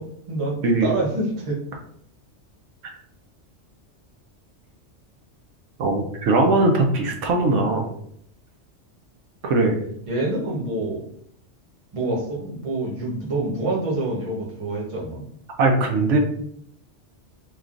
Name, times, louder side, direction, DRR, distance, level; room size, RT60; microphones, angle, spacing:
voice 1, 0.0-1.6 10.1-11.0 11.9-15.3, right 2 dB, 30° right, -3 dB, 0.8 m, -27 dB
voice 2, 5.8-7.9 9.4-9.8 15.6-16.2, right 2 dB, 80° right, 2 dB, 0.9 m, -20 dB
3.1 x 2.3 x 2.4 m, 0.67 s
omnidirectional pair, 1.2 m